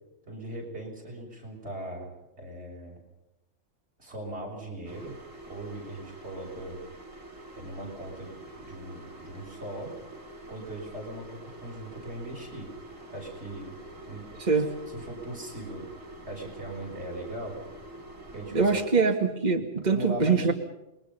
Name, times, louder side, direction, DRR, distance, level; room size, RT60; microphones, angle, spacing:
voice 1, 0.2-2.1 2.4-3.0 4.0-5.1 5.5-6.8 7.5-9.9 10.5-12.7 13.1-13.7 14.1-14.7 14.9-15.9 16.3-17.6 18.3-18.8 19.9-20.5, right 1 dB, 55° right, 0 dB, 6.8 m, -39 dB
sound 1, 4.9-18.9, right 1 dB, 80° right, 4.6 m, -46 dB
voice 2, 14.4-14.8 18.5-20.5, right 4 dB, 35° right, 3 dB, 2.1 m, -24 dB
28.5 x 22.5 x 5.6 m, 0.93 s
omnidirectional pair, 1.3 m